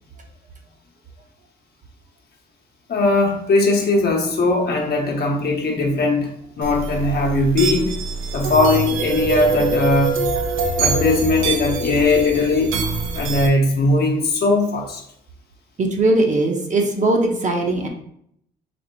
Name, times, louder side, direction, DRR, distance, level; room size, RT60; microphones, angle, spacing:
voice 1, 2.9-6.3 6.6-8.0 8.3-10.2 10.8-12.7 13.1-15.0, left 2 dB, 55° left, 1 dB, 1.0 m, -19 dB
sound 1, 6.6-13.5, right 4 dB, 85° right, 0.7 m, -24 dB
voice 2, 15.8-17.9, right 2 dB, 40° right, 2 dB, 0.8 m, -19 dB
4.2 x 2.1 x 4.3 m, 0.70 s
cardioid pair, 90°, 20 cm